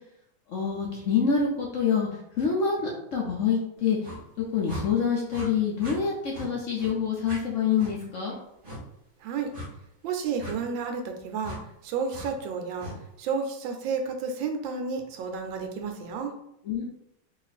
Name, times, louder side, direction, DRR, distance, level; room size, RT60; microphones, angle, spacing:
voice 1, 0.5-2.1 2.4-4.0 4.5-8.3 16.7-16.8, left 6 dB, 75° left, -3 dB, 0.7 m, -26 dB
sound 1, 4.0-4.2 4.6-4.8 5.3-5.5 5.8-6.0 6.3-6.5 6.8-6.9 7.2-7.4 7.8-7.9 8.6-8.8 9.5-9.7 10.4-10.5 11.4-11.6 12.1-12.3 12.8-13.0, left 1 dB, 35° right, 1.0 m, -38 dB
voice 2, 9.2-9.5 10.0-11.6 11.8-12.9 13.2-16.3, right 5 dB, 85° right, 5 dB, 1.4 m, -31 dB
3.1 x 2.5 x 4.0 m, 0.80 s
omnidirectional pair, 2.0 m